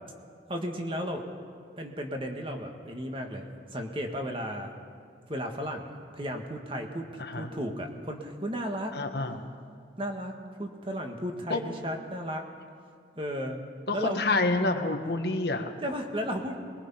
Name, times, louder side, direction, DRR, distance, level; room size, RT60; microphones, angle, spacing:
voice 1, 0.5-1.2 1.8-3.5 3.7-4.7 5.3-8.9 10.0-12.5 13.2-13.6 13.9-14.2 15.8-16.6, equal, 30° right, 3 dB, 1.7 m, -34 dB
voice 2, 8.9-9.5 11.5-11.6 13.9-15.7, left 2 dB, 65° left, 5 dB, 1.4 m, -28 dB
22.0 x 21.0 x 5.7 m, 2.2 s
head